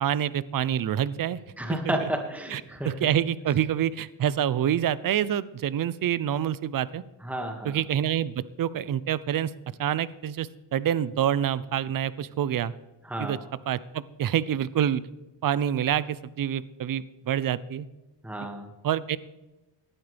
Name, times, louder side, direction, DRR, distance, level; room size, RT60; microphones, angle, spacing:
voice 1, 0.0-1.4 1.7-2.1 2.5-7.0 7.6-9.5 9.8-12.7 13.2-13.4 13.7-15.0 15.4-17.9 18.8-19.2, right 10 dB, 45° right, 18 dB, 0.7 m, -27 dB
voice 2, 1.6-2.9 7.2-7.8 13.0-13.4 18.2-18.7, right 1 dB, 5° right, 3 dB, 2.0 m, -31 dB
18.0 x 12.0 x 3.4 m, 1.1 s
cardioid pair, 90°, 46 cm